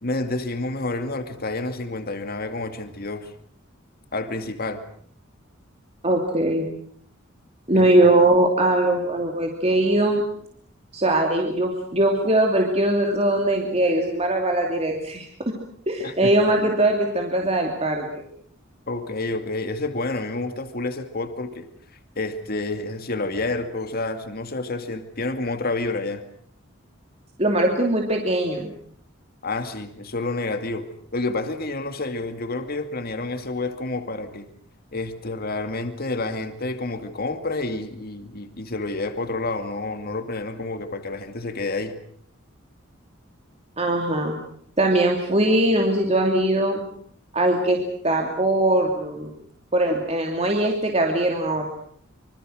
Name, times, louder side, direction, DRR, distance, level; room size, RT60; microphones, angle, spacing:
voice 1, 0.0-3.3 4.1-4.8 7.7-7.9 16.0-16.3 18.9-21.7 22.2-26.2 29.4-30.9 31.1-34.5 34.9-42.0, left 2 dB, 50° left, 8 dB, 2.4 m, -29 dB
voice 2, 6.0-6.7 7.7-10.2 10.9-15.3 15.9-18.2 27.4-28.7 43.8-44.4 44.8-46.8 47.3-47.8 48.0-49.3 49.7-51.7, right 1 dB, 30° right, 1 dB, 2.9 m, -21 dB
26.0 x 25.5 x 6.5 m, 0.64 s
head